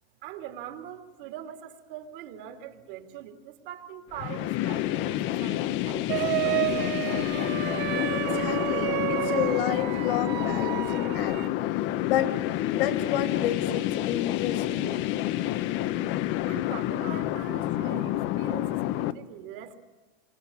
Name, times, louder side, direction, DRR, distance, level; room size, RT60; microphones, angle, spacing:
voice 1, 0.2-6.9 16.1-19.8, right 10 dB, 65° right, 5 dB, 3.2 m, -42 dB
sound 1, 4.1-19.1, left 14 dB, 40° left, 0.9 m, -28 dB
sound 2, 6.1-11.5, right 17 dB, 40° right, 0.9 m, -30 dB
voice 2, 8.1-12.4 12.7-15.0, left 9 dB, 75° left, 8 dB, 3.1 m, -31 dB
27.5 x 24.5 x 7.4 m, 1.2 s
supercardioid pair, 145°, 29 cm